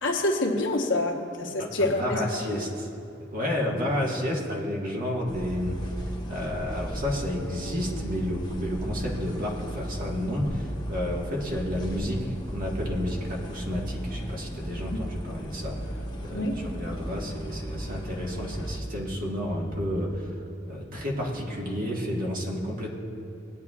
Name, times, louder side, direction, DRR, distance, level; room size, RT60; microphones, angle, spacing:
voice 1, 0.0-2.4 16.3-16.6, left 2 dB, 65° left, 0 dB, 1.2 m, -27 dB
voice 2, 1.6-2.9 3.3-5.9 6.3-20.3 20.7-22.9, left 1 dB, 45° right, -2 dB, 1.6 m, -31 dB
sound 1, 5.3-18.8, equal, 20° left, 1.0 m, -36 dB
19.5 x 9.2 x 2.4 m, 2.8 s
head